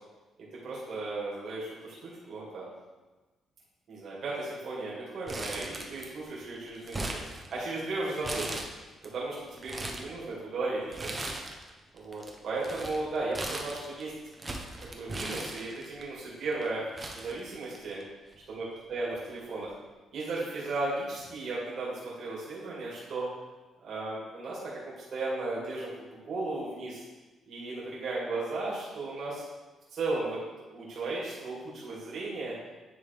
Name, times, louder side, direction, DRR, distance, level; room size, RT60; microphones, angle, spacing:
voice 1, 0.6-2.7 3.9-7.1 7.5-8.5 9.0-11.1 11.9-14.1 14.8-16.8 17.2-18.0 18.5-19.8 20.1-23.3 23.8-27.0 27.5-29.5 29.9-30.4 30.7-32.5, right 2 dB, 60° right, -6 dB, 2.1 m, -35 dB
Crumpling crinkling, 5.3-6.3 6.6-7.8 8.2-9.1 9.5-10.1 10.9-11.7 12.0-16.0 16.6-16.7 17.0-18.0 18.3-18.4 19.4-19.6, right 2 dB, 25° right, 0.8 m, -38 dB
9.7 x 3.5 x 3.4 m, 1.2 s
cardioid pair, 90°, 0 cm